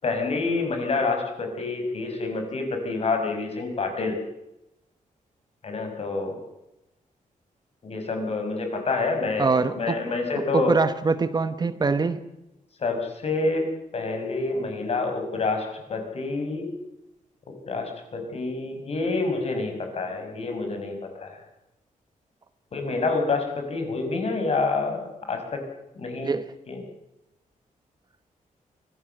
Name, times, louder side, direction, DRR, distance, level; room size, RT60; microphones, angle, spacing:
voice 1, 0.0-4.2 5.6-6.4 7.8-9.5 9.7-10.8 12.8-16.7 17.7-21.4 22.7-25.6 26.0-26.3 26.7-26.8, left 3 dB, 45° left, 4 dB, 5.4 m, -27 dB
voice 2, 9.4-10.0 10.5-12.2 26.2-26.4, right 4 dB, 30° right, 11 dB, 1.0 m, -23 dB
23.5 x 17.0 x 7.8 m, 0.90 s
wide cardioid pair, 145°, 14 cm